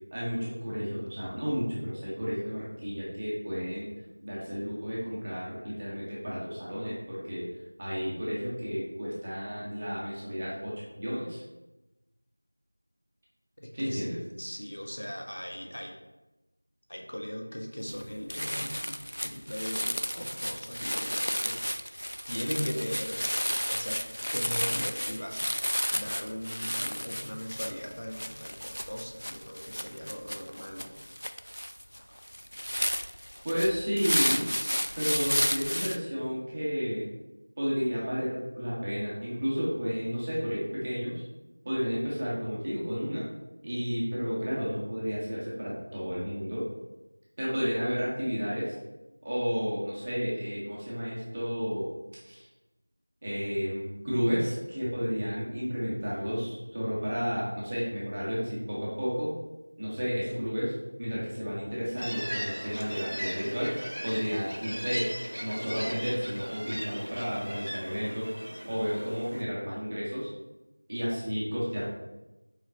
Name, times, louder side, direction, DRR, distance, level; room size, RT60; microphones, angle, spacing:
voice 1, 0.1-3.9 4.2-7.4 7.8-11.4 13.7-14.1 33.4-34.5 35.0-37.1 37.6-41.2 41.6-43.2 43.6-46.6 47.4-48.8 49.2-51.9 52.2-52.5 53.2-59.3 59.8-63.7 64.0-65.1 65.4-68.3 68.6-70.3 70.9-71.8, equal, 10° right, -7 dB, 0.7 m, -32 dB
voice 2, 13.6-14.1 14.4-16.0 16.9-19.0 19.2-23.2 23.7-24.0 24.3-25.5 25.9-31.3 32.1-32.2, equal, 45° left, 1 dB, 0.9 m, -39 dB
sound 1, 17.9-18.0 18.3-36.0, equal, 85° left, 0.4 m, -32 dB
sound 2, 62.0-69.4, equal, 55° right, 0.9 m, -38 dB
6.0 x 3.9 x 4.3 m, 1.0 s
figure-of-eight pair, 175°, 0 cm